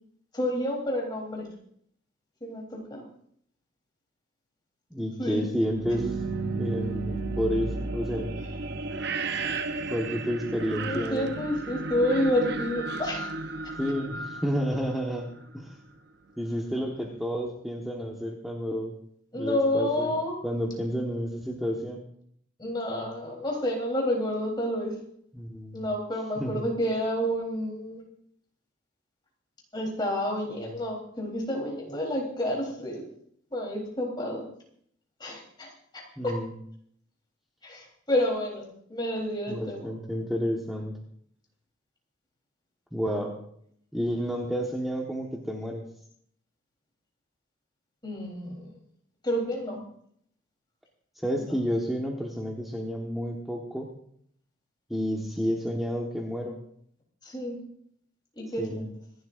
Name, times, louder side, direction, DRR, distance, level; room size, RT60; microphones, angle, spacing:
voice 1, 0.3-1.5 2.4-3.0 5.2-5.4 10.7-13.3 19.3-20.4 22.6-24.9 25.7-28.0 29.7-33.0 33.5-34.4 35.2-36.3 37.6-39.9 48.0-48.8 49.2-49.8 51.4-51.6 57.2-57.6 58.3-58.9, left 1 dB, 20° left, -1 dB, 3.7 m, -29 dB
voice 2, 4.9-6.2 6.6-8.4 9.9-11.3 13.8-15.3 15.5-15.8 16.4-19.0 19.3-20.1 20.4-22.0 25.3-25.8 26.4-26.6 36.2-36.5 39.5-40.9 42.9-43.4 43.9-45.8 51.2-53.9 54.9-56.6 58.6-58.9, equal, ahead, -2 dB, 1.4 m, -30 dB
sound 1, 5.6-15.5, right 3 dB, 55° right, 0.8 m, -33 dB
26.0 x 12.0 x 2.6 m, 0.66 s
head